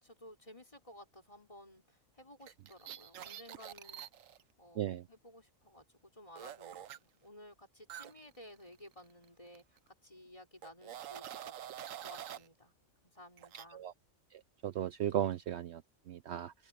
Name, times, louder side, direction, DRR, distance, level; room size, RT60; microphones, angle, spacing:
voice 1, 0.0-4.3 4.6-11.5 11.9-12.7 13.1-13.9, left 1 dB, 25° left, 4.2 m, -56 dB
sound 1, 2.4-4.4 6.4-7.0 7.9-9.3 9.5-9.8 10.6-12.5 13.4-13.7, right 10 dB, 80° right, 1.1 m, -47 dB
voice 2, 14.3-15.8 16.1-16.5, right 11 dB, 65° right, 0.8 m, -36 dB
open air
omnidirectional pair, 1.3 m